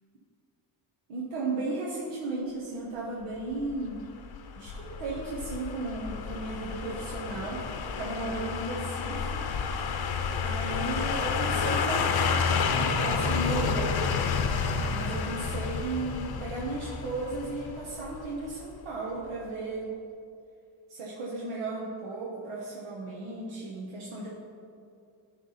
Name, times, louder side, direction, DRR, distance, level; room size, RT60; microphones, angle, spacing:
voice 1, 1.1-4.0 4.5-7.6 8.0-9.4 10.4-14.1 14.9-19.9 20.9-24.3, right 2 dB, 80° right, -5 dB, 1.3 m, -35 dB
sound 1, 3.6-18.5 18.8-18.9, left 5 dB, 50° left, 0.7 m, -30 dB
10.0 x 3.6 x 5.6 m, 2.4 s
cardioid pair, 100°, 50 cm